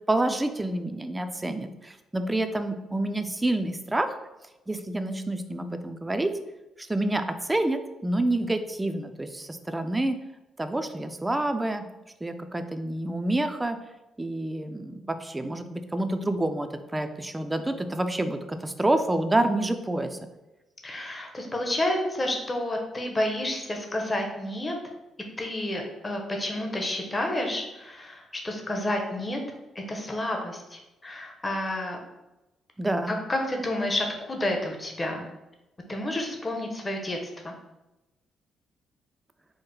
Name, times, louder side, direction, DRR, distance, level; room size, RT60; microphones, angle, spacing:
voice 1, 0.0-4.2 4.7-6.3 6.8-10.2 10.6-11.8 12.2-13.8 14.2-20.2 32.8-33.1, right 1 dB, 15° right, 8 dB, 0.4 m, -28 dB
voice 2, 20.8-24.8 25.4-29.4 29.9-32.0 33.1-35.3 35.9-37.2 37.4-37.5, left 1 dB, 20° left, 2 dB, 0.8 m, -30 dB
4.7 x 2.1 x 4.7 m, 1.0 s
cardioid pair, 90°, 0 cm